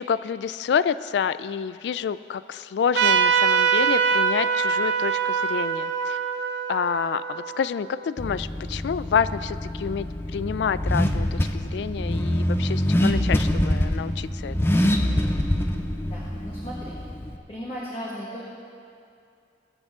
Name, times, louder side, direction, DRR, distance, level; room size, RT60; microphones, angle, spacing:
voice 1, 0.0-6.2 6.7-14.8, left 7 dB, 75° left, 16 dB, 0.3 m, -28 dB
Trumpet, 2.9-8.0, right 6 dB, 75° right, 0.6 m, -23 dB
Car / Accelerating revving vroom, 8.2-17.4, left 1 dB, 15° left, 0.5 m, -25 dB
voice 2, 16.1-17.0 17.5-18.4, equal, 30° left, -7 dB, 1.7 m, -36 dB
21.5 x 7.9 x 3.7 m, 2.4 s
head